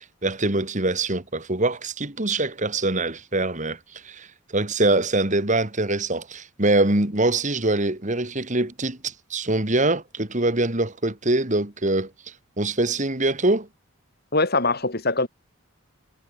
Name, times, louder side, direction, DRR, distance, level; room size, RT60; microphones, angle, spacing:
voice 1, 0.0-4.3 4.5-12.1 12.6-13.7, right 2 dB, 35° right, 2.6 m, -24 dB
voice 2, 14.3-15.3, left 3 dB, 50° left, 6.0 m, -22 dB
head